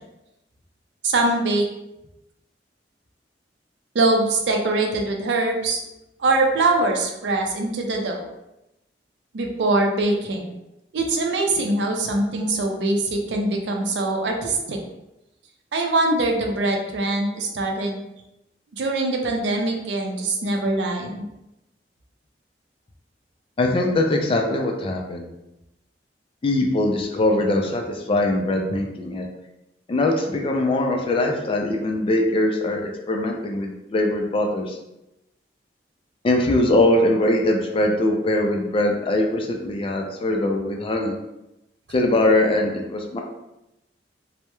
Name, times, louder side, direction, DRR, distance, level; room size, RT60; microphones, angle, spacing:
voice 1, 1.0-1.6 3.9-5.8 6.2-8.3 9.3-10.5 10.9-14.8 15.7-18.1 18.7-21.3, right 2 dB, 80° right, 2 dB, 0.4 m, -23 dB
voice 2, 23.6-25.3 26.4-29.3 29.9-34.8 36.2-41.2 41.9-43.2, left 1 dB, 30° left, 2 dB, 0.3 m, -22 dB
2.2 x 2.0 x 2.9 m, 0.91 s
head